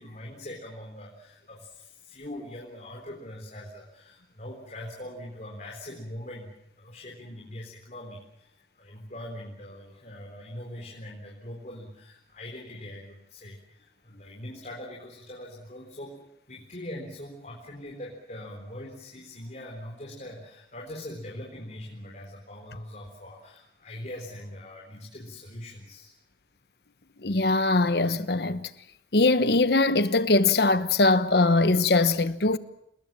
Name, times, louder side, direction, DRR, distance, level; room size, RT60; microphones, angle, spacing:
voice 1, 0.0-6.5 6.8-16.2 16.5-26.1, left 1 dB, 40° left, 4.0 m, -42 dB
voice 2, 27.2-28.7 29.1-32.6, left 2 dB, 60° left, 1.1 m, -22 dB
28.5 x 20.0 x 7.6 m
head